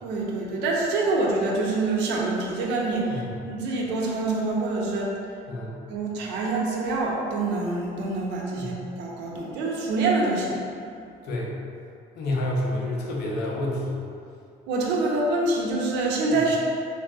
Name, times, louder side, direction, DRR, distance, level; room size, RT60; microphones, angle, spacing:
voice 1, 0.0-5.1 5.9-10.6 14.7-16.6, right 3 dB, 90° right, -2 dB, 0.6 m, -26 dB
voice 2, 12.2-14.0, left 1 dB, 80° left, -3 dB, 0.6 m, -28 dB
3.4 x 2.6 x 2.3 m, 2.5 s
cardioid pair, 110°, 17 cm